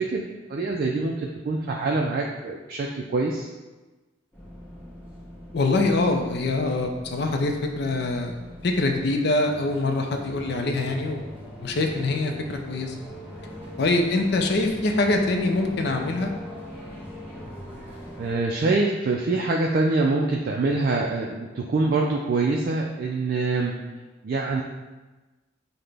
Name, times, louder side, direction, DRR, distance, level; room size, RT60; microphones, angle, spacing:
voice 1, 0.0-3.5 18.2-23.7 24.2-24.6, right 3 dB, 50° right, -1 dB, 0.3 m, -25 dB
sound 1, 4.3-18.3, equal, 10° left, 1.1 m, -41 dB
voice 2, 5.5-8.4 8.6-11.2 11.6-13.0 13.8-16.3, left 2 dB, 55° left, 4 dB, 0.4 m, -24 dB
5.8 x 2.1 x 3.3 m, 1.2 s
head